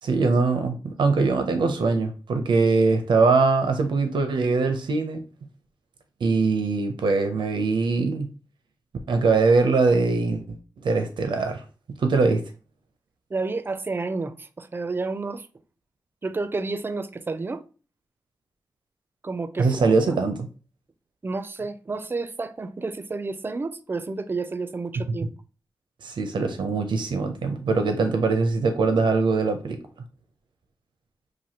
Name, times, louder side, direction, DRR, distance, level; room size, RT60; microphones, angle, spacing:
voice 1, 0.0-5.2 6.2-8.3 9.1-10.6 10.8-11.6 12.0-12.4 19.6-20.5 26.0-29.8, right 4 dB, 85° right, 0.5 m, -22 dB
voice 2, 13.3-15.5 16.2-17.6 19.2-20.2 21.2-25.3, right 3 dB, 30° right, 0.4 m, -30 dB
5.8 x 2.6 x 2.8 m
wide cardioid pair, 110°, 8 cm